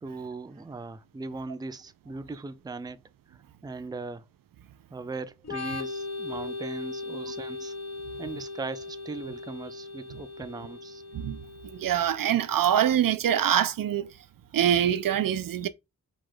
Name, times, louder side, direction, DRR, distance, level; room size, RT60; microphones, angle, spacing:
voice 1, 0.0-3.0 3.3-4.2 4.9-7.7 8.2-11.0, right 3 dB, 10° right, 0.4 m, -39 dB
Organ, 5.4-12.9, left 3 dB, 45° left, 0.9 m, -39 dB
voice 2, 11.1-14.1 14.5-15.7, right 10 dB, 65° right, 0.5 m, -25 dB
4.9 x 2.4 x 3.8 m
cardioid pair, 60°, 35 cm